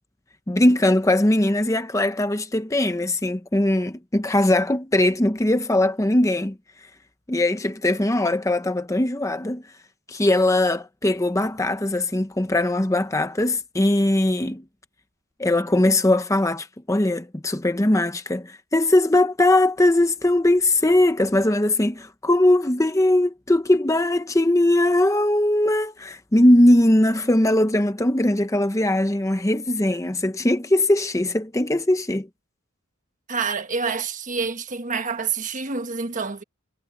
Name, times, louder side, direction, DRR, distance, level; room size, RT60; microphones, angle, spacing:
voice 1, 0.5-6.6 7.3-9.6 10.1-14.6 15.4-32.3, left 1 dB, 15° left, 0.7 m, -20 dB
voice 2, 33.3-36.4, right 5 dB, 35° right, 1.3 m, -27 dB
head